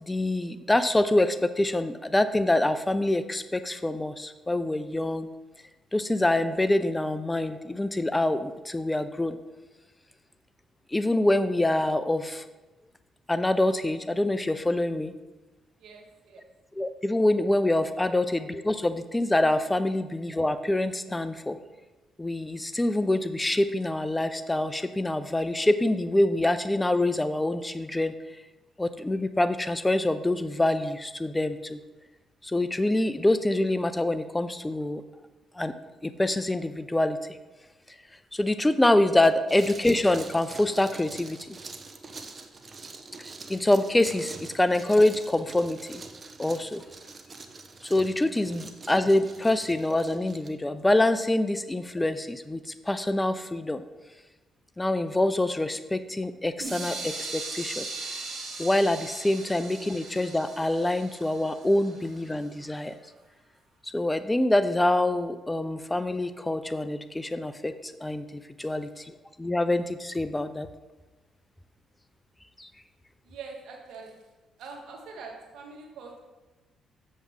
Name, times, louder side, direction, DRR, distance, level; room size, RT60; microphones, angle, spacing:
voice 1, 0.1-5.3 5.9-9.4 10.9-12.4 13.3-15.1 16.8-21.6 22.2-28.1 28.8-31.8 32.4-35.0 35.5-35.7 36.0-37.2 38.3-41.6 43.2-46.0 46.4-46.8 47.8-53.8 54.8-57.9 58.6-62.9 63.8-70.7 72.6-72.7, left 1 dB, 15° left, 11 dB, 0.4 m, -25 dB
voice 2, 15.8-16.4 68.6-68.7 73.2-74.2 74.6-76.2, right 4 dB, 80° right, 1 dB, 1.5 m, -44 dB
sound 1, 39.2-50.5, right 3 dB, 35° right, 0.8 m, -45 dB
sound 2, 56.6-62.4, right 3 dB, 65° right, 2.0 m, -39 dB
7.4 x 7.0 x 3.6 m, 1.1 s
cardioid pair, 90°, 0 cm